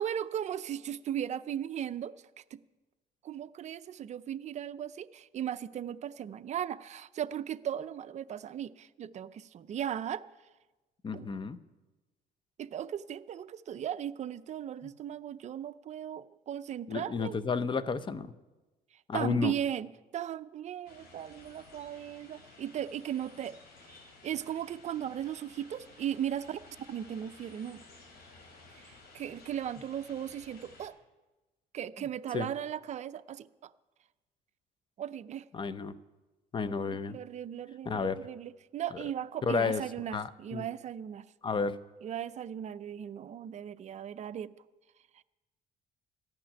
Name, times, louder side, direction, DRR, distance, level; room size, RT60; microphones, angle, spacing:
voice 1, 0.0-2.4 3.2-10.2 11.1-11.3 12.6-17.4 19.1-23.6 23.8-27.8 28.7-30.9 31.7-33.7 35.0-35.5 36.9-41.3 42.0-44.5 45.1-45.2, right 10 dB, 45° right, 12 dB, 0.5 m, -37 dB
voice 2, 11.0-11.6 16.9-18.3 19.1-19.5 32.3-32.5 35.5-35.9 36.5-37.2 37.9-38.2 39.4-39.8 40.1-40.7 41.4-41.8, left 5 dB, 30° left, 14 dB, 0.7 m, -31 dB
sound 1, 20.9-30.9, left 3 dB, 70° left, 3.1 m, -55 dB
14.0 x 6.1 x 10.0 m, 1.1 s
cardioid pair, 110°, 17 cm